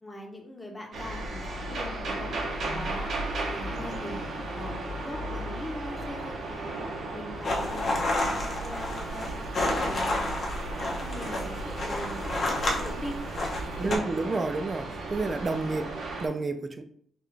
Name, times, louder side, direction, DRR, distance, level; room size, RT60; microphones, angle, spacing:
voice 1, 0.0-3.1 3.5-4.2 4.5-6.7 7.1-8.0 8.6-10.3 10.8-12.2 12.8-13.2 13.8-14.1, left 1 dB, 15° left, 0.9 m, -41 dB
sound 1, 0.9-16.3, right 2 dB, 65° right, 0.8 m, -35 dB
sound 2, 7.4-14.0, left 1 dB, 50° left, 1.0 m, -30 dB
voice 2, 13.8-15.9 16.2-16.8, right 3 dB, 30° right, 0.4 m, -30 dB
3.8 x 2.4 x 3.3 m
cardioid pair, 110°, 0 cm